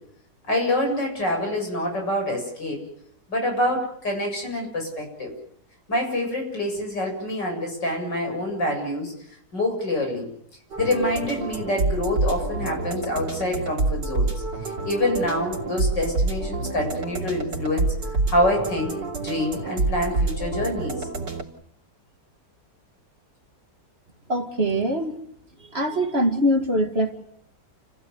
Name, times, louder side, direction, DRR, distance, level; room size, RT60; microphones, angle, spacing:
voice 1, 0.5-2.8 3.3-5.3 5.9-9.1 9.5-10.3 10.8-14.3 14.6-17.9 18.3-18.9 19.2-21.1, left 1 dB, 90° left, 2 dB, 8.3 m, -26 dB
sound 1, 10.7-21.4, right 3 dB, 85° right, 4.0 m, -27 dB
voice 2, 24.3-25.2 25.7-27.1, equal, 35° right, 5 dB, 2.4 m, -23 dB
30.0 x 15.5 x 9.6 m, 0.70 s
omnidirectional pair, 1.8 m